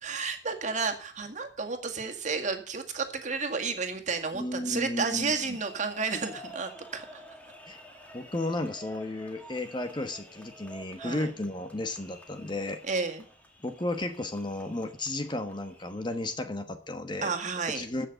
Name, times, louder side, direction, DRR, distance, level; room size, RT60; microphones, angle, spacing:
voice 1, 0.0-7.2 11.0-11.3 12.8-13.3 17.2-17.9, right 4 dB, 40° right, 5 dB, 2.0 m, -32 dB
voice 2, 4.3-5.3 7.7-7.8 8.1-12.8 13.6-17.3 17.7-18.1, left 2 dB, 25° left, 8 dB, 1.2 m, -33 dB
sound 1, 5.3-16.3, right 1 dB, 10° left, 2.3 m, -50 dB
15.5 x 6.4 x 6.9 m, 0.42 s
head